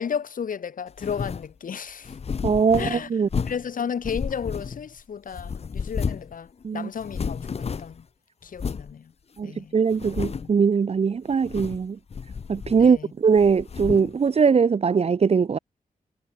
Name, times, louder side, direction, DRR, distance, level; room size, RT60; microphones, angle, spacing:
voice 1, 0.0-2.1 2.7-3.1 3.4-7.5 7.8-8.0 8.4-9.1 9.4-9.7 12.8-13.1, left 7 dB, 75° left, 6.5 m, -33 dB
sound 1, 1.0-1.5 2.0-3.7 4.0-5.0 5.3-6.4 6.6-6.7 7.0-8.0 8.6-8.9 9.4-9.5 9.9-10.6 11.3-11.9 12.1-13.0 13.4-14.2, left 6 dB, 45° left, 1.1 m, -32 dB
voice 2, 2.4-3.3 6.6-6.9 9.4-12.0 12.5-15.6, right 6 dB, 45° right, 0.9 m, -21 dB
wide cardioid pair, 120°, 14 cm